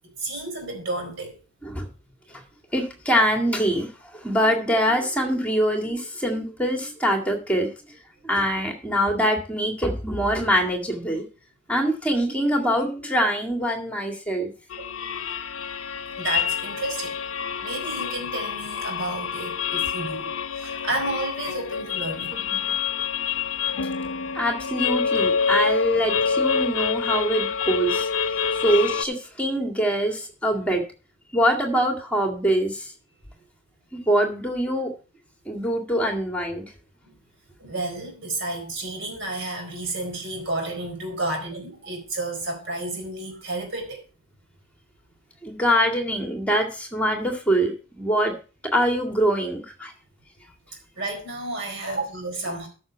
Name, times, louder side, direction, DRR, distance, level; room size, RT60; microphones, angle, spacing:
voice 1, 0.2-1.3 16.2-17.2 17.6-22.4 30.0-30.1 37.6-44.0 51.0-52.7, right 2 dB, 60° right, 4.3 m, -31 dB
voice 2, 2.7-7.7 8.2-11.2 11.7-14.5 22.4-22.6 24.3-28.1 28.5-30.8 31.3-32.9 33.9-34.9 35.5-36.6 45.4-48.3 48.7-49.9, equal, 5° left, 2.0 m, -24 dB
sound 1, 14.7-29.0, left 6 dB, 80° left, 0.7 m, -27 dB
13.0 x 6.3 x 4.5 m
head